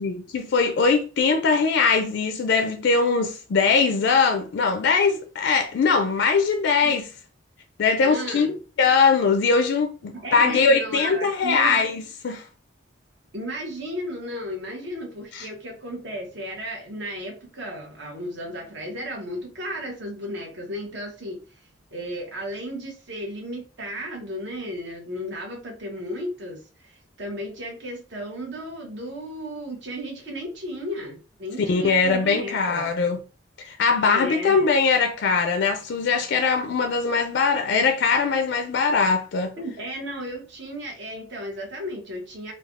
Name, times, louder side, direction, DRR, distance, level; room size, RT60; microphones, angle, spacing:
voice 1, 0.0-7.1 7.8-12.5 31.7-33.2 33.6-39.5, left 4 dB, 65° left, 0.4 m, -21 dB
voice 2, 8.0-8.5 10.1-11.8 13.3-32.9 34.0-34.7 39.5-42.5, equal, 65° right, 1.1 m, -34 dB
3.2 x 2.3 x 2.4 m
head